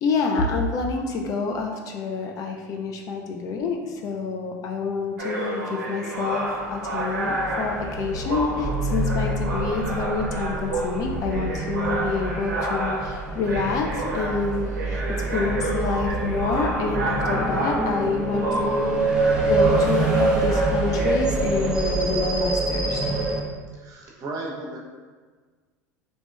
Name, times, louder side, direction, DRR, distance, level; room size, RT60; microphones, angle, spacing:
voice 1, 0.0-23.0, left 4 dB, 40° left, 2 dB, 0.4 m, -28 dB
sound 1, 5.2-21.2, right 1 dB, 75° right, 0.5 m, -30 dB
sound 2, 6.5-23.4, right 2 dB, 10° right, 0.6 m, -26 dB
voice 2, 23.7-24.8, right 2 dB, 40° right, -2 dB, 0.7 m, -34 dB
2.9 x 2.7 x 2.3 m, 1.4 s
figure-of-eight pair, 75°, 9 cm